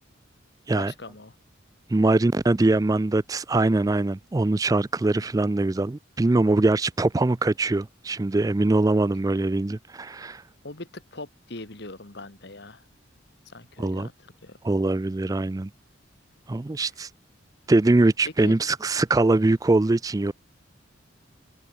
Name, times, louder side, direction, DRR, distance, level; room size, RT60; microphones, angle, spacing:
voice 1, 0.7-1.4 5.2-5.3 10.6-12.8 13.5-14.6 18.4-18.6, left 2 dB, 55° left, 2.1 m, -41 dB
voice 2, 1.9-10.4 13.8-14.1 14.6-15.7 16.5-17.1 17.7-20.3, right 2 dB, 15° right, 0.3 m, -22 dB
head